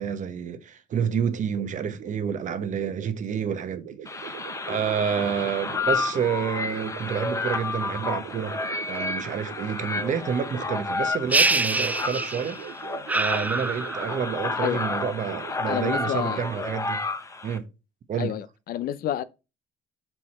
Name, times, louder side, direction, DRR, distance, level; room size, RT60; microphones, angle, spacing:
voice 1, 0.0-4.4 4.7-8.6 8.9-12.6 13.1-17.0 17.4-17.6 18.1-18.3, right 7 dB, 45° right, 1.0 m, -29 dB
sound 1, 0.9-16.8, right 9 dB, 75° right, 0.8 m, -42 dB
sound 2, 4.0-17.6, left 3 dB, 20° left, 0.8 m, -31 dB
sound 3, 11.3-12.6 13.1-14.3, right 2 dB, 10° right, 0.3 m, -25 dB
voice 2, 15.6-16.4 18.2-19.2, left 11 dB, 60° left, 0.6 m, -29 dB
6.2 x 4.6 x 4.3 m
cardioid pair, 110°, 17 cm